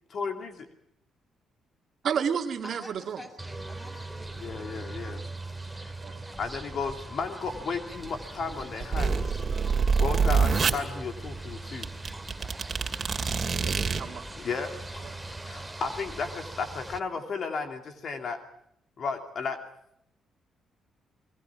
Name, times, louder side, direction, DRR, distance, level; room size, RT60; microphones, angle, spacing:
voice 1, 0.1-0.7 4.4-5.2 5.7-5.9 6.4-9.3 10.0-11.9 14.4-15.1 15.4-18.4 19.0-19.6, left 5 dB, 55° left, 6 dB, 2.6 m, -34 dB
voice 2, 2.0-3.2 6.0-6.2 13.6-14.2 15.0-15.2, right 7 dB, 60° right, 5 dB, 2.0 m, -31 dB
voice 3, 2.6-4.9, equal, 15° left, 5 dB, 7.3 m, -48 dB
sound 1, 3.4-17.0, right 2 dB, 10° right, 2.0 m, -40 dB
sound 2, 8.5-10.8 11.5-11.6 11.8-14.0, right 5 dB, 40° right, 2.6 m, -26 dB
29.5 x 21.5 x 6.1 m, 0.73 s
cardioid pair, 90°, 0 cm